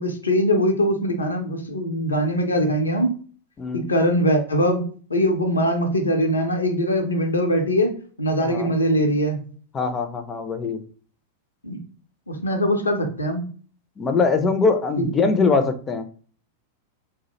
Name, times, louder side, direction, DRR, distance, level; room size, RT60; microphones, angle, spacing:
voice 1, 0.0-3.2 3.7-4.8 5.1-9.4 11.6-11.8 12.3-13.5 15.0-15.1, equal, 75° left, 3 dB, 0.5 m, -22 dB
voice 2, 3.6-3.9 8.4-8.7 9.7-10.8 14.0-16.1, left 4 dB, 20° left, 7 dB, 0.4 m, -22 dB
2.3 x 2.0 x 2.8 m, 0.42 s
figure-of-eight pair, 90°, 0 cm